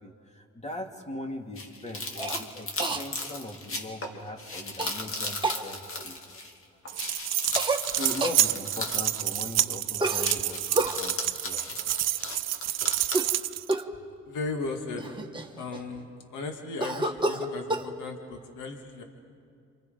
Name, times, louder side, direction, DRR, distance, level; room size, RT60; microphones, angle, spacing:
voice 1, 0.0-6.4 7.7-11.9, left 1 dB, 20° left, 3 dB, 2.8 m, -40 dB
sound 1, 1.6-6.6 6.9-9.7 10.0-13.3, left 2 dB, 45° left, 2.6 m, -36 dB
Cough, 2.2-2.4 2.8-3.0 4.8-4.9 5.4-5.6 7.5-7.8 8.2-8.4 10.0-11.0 13.0-13.4 13.7-14.0 14.6-14.7 15.0-16.0 16.8-17.9, right 2 dB, 15° right, 1.6 m, -29 dB
sound 2, 6.9-13.8, right 13 dB, 60° right, 0.6 m, -28 dB
voice 2, 14.3-15.1 15.6-16.1 16.3-19.0, left 3 dB, 85° left, 3 dB, 2.5 m, -36 dB
28.0 x 26.0 x 5.4 m, 2.4 s
cardioid pair, 90°, 30 cm